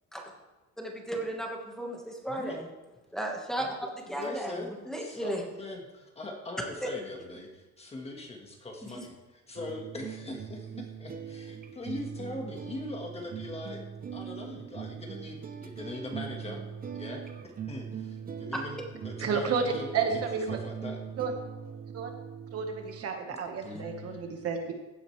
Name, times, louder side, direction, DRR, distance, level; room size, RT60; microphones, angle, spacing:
voice 1, 0.8-2.7 3.1-4.6 4.9-5.4 6.8-6.9 8.8-9.0, right 1 dB, ahead, -1 dB, 1.4 m, -35 dB
voice 2, 2.3-2.6 4.1-4.7 5.0-13.8 14.1-16.6 16.9-17.2 17.7-21.0 23.3-24.5, left 2 dB, 20° left, 1 dB, 1.5 m, -41 dB
sound 1, 9.5-23.1, right 7 dB, 30° right, 0.8 m, -41 dB
voice 3, 19.2-19.6 19.9-20.6 21.2-21.3 21.9-22.1 22.5-24.7, right 6 dB, 50° right, 4 dB, 1.4 m, -31 dB
16.0 x 9.0 x 3.3 m, 1.2 s
cardioid pair, 170°, 30 cm